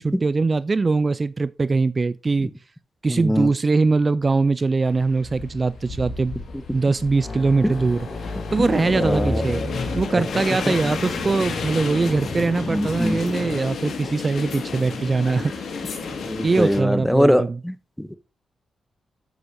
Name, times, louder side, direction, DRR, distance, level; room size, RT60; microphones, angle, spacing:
voice 1, 0.0-2.5 3.0-6.4 6.7-8.1 8.5-9.6 9.9-15.7 16.4-17.6, right 3 dB, 40° right, 0.3 m, -22 dB
voice 2, 3.1-3.5 7.6-7.7 8.6-9.4 12.7-13.2 16.3-18.2, equal, 5° left, 0.7 m, -22 dB
sound 1, 4.9-16.8, left 4 dB, 75° left, 1.9 m, -32 dB
sound 2, 7.1-14.1, left 1 dB, 45° left, 4.8 m, -32 dB
9.6 x 7.7 x 2.6 m
cardioid pair, 60°, 0 cm